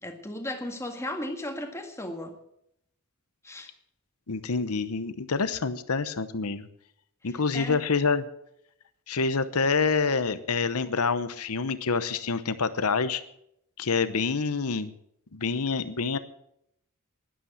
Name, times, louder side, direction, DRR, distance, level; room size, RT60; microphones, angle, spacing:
voice 1, 0.0-2.4 3.4-3.7 7.5-7.8, left 1 dB, 10° left, 4 dB, 1.8 m, -35 dB
voice 2, 4.3-6.7 7.2-8.3 9.1-13.2 13.8-14.9 15.3-16.2, left 4 dB, 80° left, 12 dB, 0.9 m, -27 dB
11.5 x 11.5 x 7.5 m, 0.76 s
head